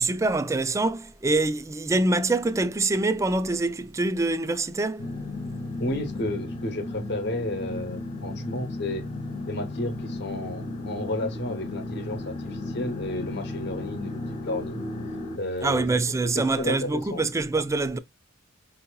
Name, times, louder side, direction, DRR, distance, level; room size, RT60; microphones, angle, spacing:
voice 1, 0.0-5.1 15.6-18.0, right 2 dB, 15° right, 0.3 m, -25 dB
sound 1, 5.0-15.4, left 2 dB, 35° left, 0.6 m, -35 dB
voice 2, 5.8-9.1 9.5-14.8 15.4-16.0 16.3-17.3, left 1 dB, 60° left, 0.9 m, -32 dB
4.5 x 2.7 x 2.2 m
head